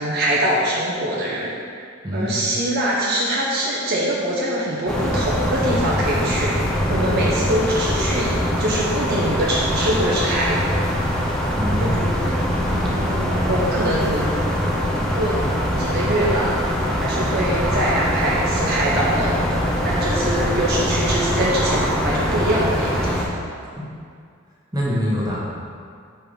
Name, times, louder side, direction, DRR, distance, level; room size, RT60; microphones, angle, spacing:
voice 1, 0.0-1.5 2.1-6.5 6.9-10.6 11.8-12.1 12.7-14.3 15.1-16.6 17.0-23.3, right 1 dB, 50° right, -5 dB, 0.9 m, -23 dB
voice 2, 2.0-2.4 6.9-7.2 11.5-12.0 23.8-23.9 24.7-25.4, equal, 20° right, -6 dB, 1.3 m, -24 dB
sound 1, 4.9-23.3, equal, 5° left, 0.6 m, -23 dB
5.6 x 4.6 x 5.2 m, 2.2 s
head